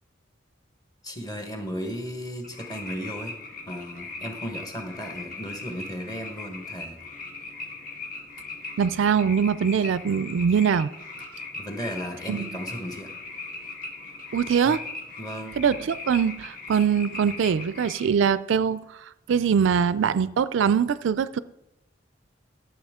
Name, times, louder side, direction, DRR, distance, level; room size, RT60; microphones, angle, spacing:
voice 1, 1.0-3.3 3.7-7.0 11.5-13.2 14.6-14.7 15.2-15.6, equal, 20° left, 1.2 m, -35 dB
sound 1, 2.4-18.1, left 3 dB, 45° left, 1.5 m, -39 dB
voice 2, 8.8-10.9 12.3-12.5 14.3-14.8 15.6-18.8 19.3-21.4, right 7 dB, 75° right, 0.3 m, -22 dB
13.0 x 7.3 x 3.6 m
head